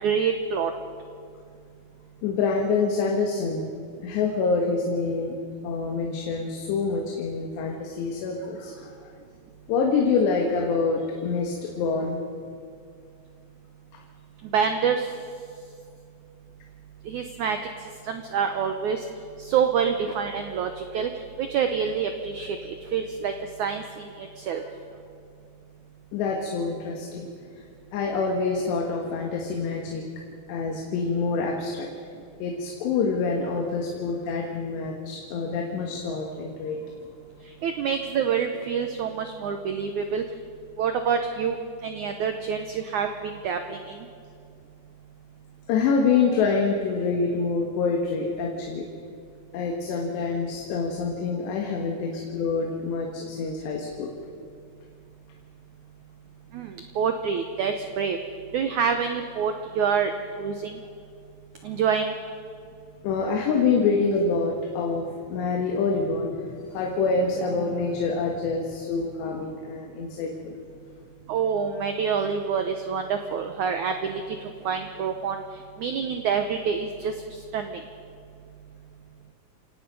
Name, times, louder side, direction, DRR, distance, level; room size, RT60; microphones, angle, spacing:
voice 1, 0.0-0.7 14.5-15.1 17.1-17.6 18.1-19.0 19.4-21.1 21.4-23.3 23.6-24.6 37.6-40.2 40.8-41.6 41.8-43.8 56.5-58.2 58.5-60.1 60.4-60.8 61.6-62.1 71.3-74.2 74.6-75.4 75.8-77.1 77.5-77.8, right 6 dB, 85° right, 6 dB, 1.7 m, -26 dB
voice 2, 2.2-3.7 4.0-5.3 5.6-9.1 9.7-12.2 13.9-14.0 26.1-27.3 27.9-30.0 30.5-31.9 32.4-36.8 45.7-48.9 49.5-54.1 61.6-61.8 63.0-70.5, left 4 dB, 90° left, 1 dB, 3.8 m, -26 dB
28.0 x 17.5 x 5.5 m, 2.3 s
omnidirectional pair, 4.8 m